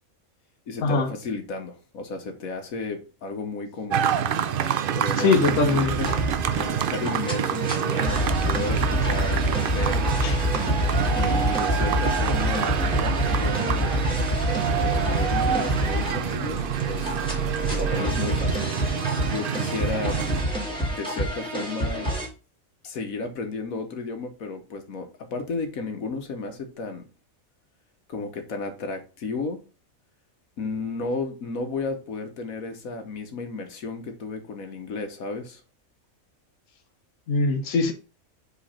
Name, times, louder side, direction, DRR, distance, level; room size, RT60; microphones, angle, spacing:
voice 1, 0.7-4.1 4.9-6.0 6.6-10.0 11.1-13.9 14.8-17.2 17.7-18.7 19.3-20.2 20.9-22.1 22.8-27.1 28.1-29.6 30.6-35.6, left 3 dB, 85° left, 1.6 m, -33 dB
sound 1, 3.9-20.4, right 9 dB, 65° right, 0.5 m, -27 dB
voice 2, 5.2-6.1 10.2-10.4 37.3-37.9, left 4 dB, 70° left, 1.3 m, -22 dB
sound 2, 5.5-22.3, equal, 5° left, 2.2 m, -27 dB
5.1 x 3.9 x 5.6 m
omnidirectional pair, 1.4 m